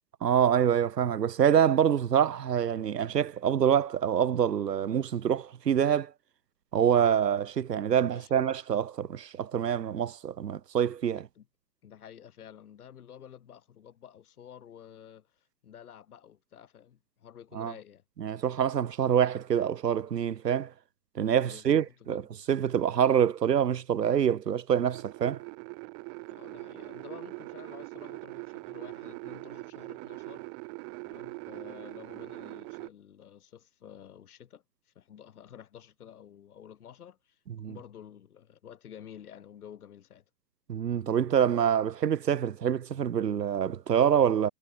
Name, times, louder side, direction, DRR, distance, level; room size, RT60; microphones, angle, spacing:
voice 1, 0.2-6.1 6.7-11.2 17.5-17.7 18.2-20.7 21.1-22.2 22.5-25.4 37.6-37.8 40.7-44.5, right 8 dB, 90° right, 1.2 m, -26 dB
voice 2, 11.0-11.5 11.8-18.0 21.4-22.3 26.2-30.5 31.0-40.2, left 9 dB, 65° left, 4.7 m, -50 dB
sound 1, 24.9-32.9, right 40 dB or more, 25° right, 1.6 m, -42 dB
hypercardioid pair, 140°, 47 cm